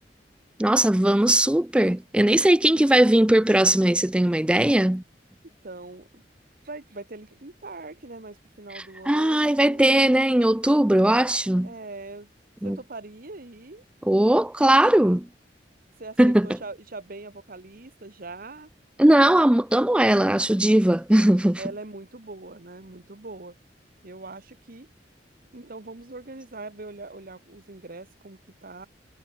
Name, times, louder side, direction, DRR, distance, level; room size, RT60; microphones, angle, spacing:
voice 1, 0.6-5.0 8.7-11.7 12.6-12.8 14.1-15.3 16.2-16.5 19.0-21.6, right 1 dB, 5° right, 0.4 m, -19 dB
voice 2, 5.6-6.2 6.6-9.9 11.6-12.3 12.6-13.8 16.0-18.7 19.3-19.4 21.6-23.6 24.0-24.9 25.5-28.9, right 3 dB, 55° right, 1.5 m, -41 dB
head